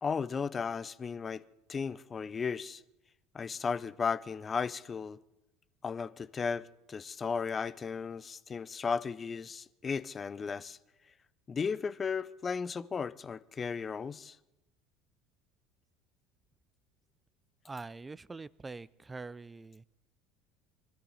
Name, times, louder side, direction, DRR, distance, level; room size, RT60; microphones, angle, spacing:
voice 1, 0.0-1.4 1.7-2.8 3.3-5.2 5.8-10.8 11.5-14.4, left 5 dB, 30° left, 0.6 m, -35 dB
voice 2, 17.6-19.8, right 3 dB, 20° right, 0.4 m, -44 dB
22.5 x 13.5 x 4.1 m
hypercardioid pair, 70°, 0 cm